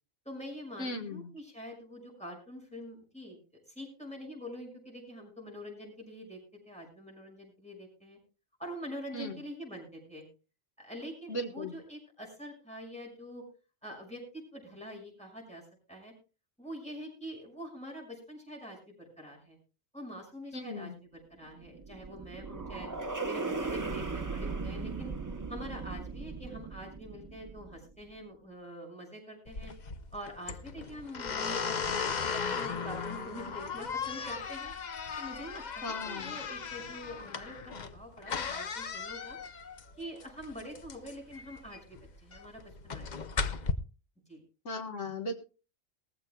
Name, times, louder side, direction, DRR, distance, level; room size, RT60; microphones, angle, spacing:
voice 1, 0.2-3.4 3.7-6.4 6.6-8.2 8.6-10.2 10.8-13.4 13.8-15.6 15.9-16.1 16.6-19.6 19.9-22.9 23.2-25.1 25.5-29.7 30.1-34.7 35.2-39.4 40.0-43.1 43.3-43.7 44.3-44.4, equal, 5° left, 0 dB, 6.1 m, -45 dB
voice 2, 0.8-1.2 9.1-9.3 11.3-11.7 20.5-20.9 35.8-36.3 44.7-45.3, left 1 dB, 65° left, 5 dB, 1.8 m, -36 dB
sound 1, 21.4-27.9, right 3 dB, 20° right, 0.7 m, -38 dB
sound 2, 29.5-43.7, left 5 dB, 40° left, 0.7 m, -37 dB
19.5 x 15.0 x 2.3 m, 0.33 s
omnidirectional pair, 1.4 m